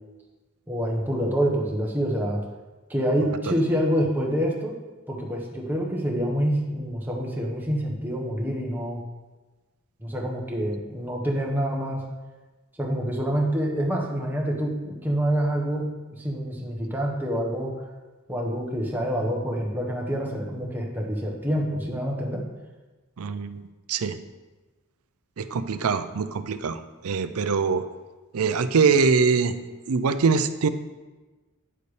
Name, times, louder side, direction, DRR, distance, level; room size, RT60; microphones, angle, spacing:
voice 1, 0.7-2.4 2.9-4.8 5.1-9.0 10.0-12.0 12.8-17.7 18.3-22.4, equal, 10° right, -1 dB, 1.2 m, -27 dB
voice 2, 23.2-23.6 23.9-24.2 25.4-27.8 28.3-29.5 29.9-30.7, right 5 dB, 80° right, 11 dB, 0.5 m, -23 dB
9.8 x 6.8 x 3.3 m, 1.2 s
head